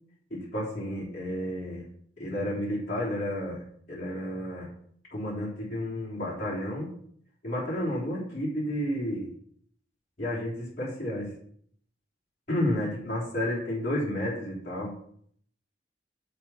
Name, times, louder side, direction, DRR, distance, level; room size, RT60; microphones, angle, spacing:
voice 1, 0.3-1.8 2.2-3.6 3.9-4.7 5.1-6.9 7.4-9.3 10.2-11.3 12.5-14.9, left 1 dB, 40° left, -9 dB, 3.6 m, -31 dB
8.2 x 7.3 x 4.4 m, 0.63 s
head